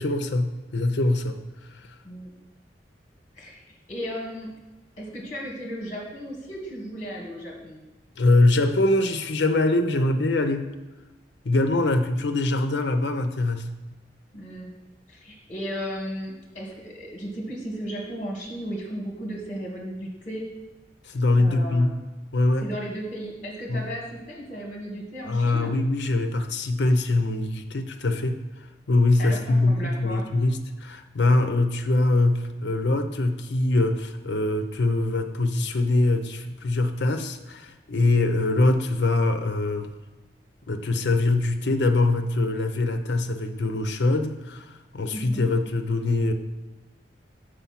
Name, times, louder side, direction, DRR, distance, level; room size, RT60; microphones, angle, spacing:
voice 1, 0.0-1.4 8.2-10.7 11.4-13.7 21.0-21.9 22.3-22.6 23.7-23.9 25.3-28.4 28.9-39.9 40.7-46.3, left 2 dB, 75° left, 7 dB, 0.7 m, -23 dB
voice 2, 3.4-4.5 5.0-7.8 14.3-14.7 15.1-20.4 21.4-21.9 22.6-25.7 29.2-30.3 45.1-45.5, equal, 45° left, -1 dB, 1.6 m, -35 dB
7.0 x 5.1 x 5.7 m, 1.1 s
head